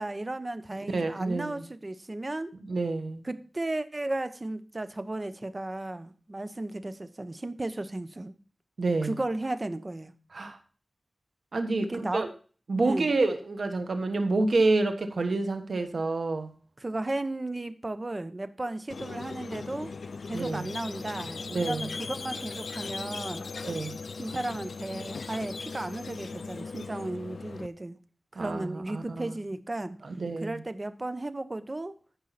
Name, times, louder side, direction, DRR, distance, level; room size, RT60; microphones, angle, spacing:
voice 1, 0.0-2.5 3.2-8.3 9.0-10.1 11.8-12.3 12.8-13.1 16.8-19.9 20.2-23.5 24.2-28.0 28.3-30.0 30.4-32.0, right 2 dB, 35° right, 0.9 m, -34 dB
voice 2, 0.9-1.6 2.7-3.2 8.8-9.1 10.3-10.6 11.5-12.3 12.7-16.5 20.3-20.7 21.5-21.9 23.6-24.0 28.3-29.4 30.0-30.6, right 3 dB, 80° right, 1.5 m, -28 dB
Squeak, 18.9-27.7, left 4 dB, 90° left, 0.4 m, -38 dB
13.5 x 5.6 x 4.2 m
wide cardioid pair, 60°, 0 cm